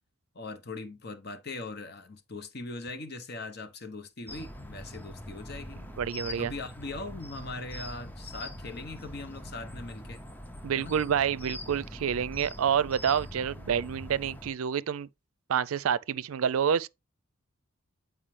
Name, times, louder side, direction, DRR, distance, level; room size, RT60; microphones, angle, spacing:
voice 1, 0.3-5.8 6.4-10.2 10.7-11.0, left 3 dB, 50° left, 0.9 m, -40 dB
sound 1, 4.3-14.5, left 1 dB, 10° left, 0.5 m, -43 dB
voice 2, 6.0-6.5 10.6-15.1 15.5-16.9, right 8 dB, 85° right, 0.4 m, -28 dB
8.7 x 4.8 x 3.2 m
head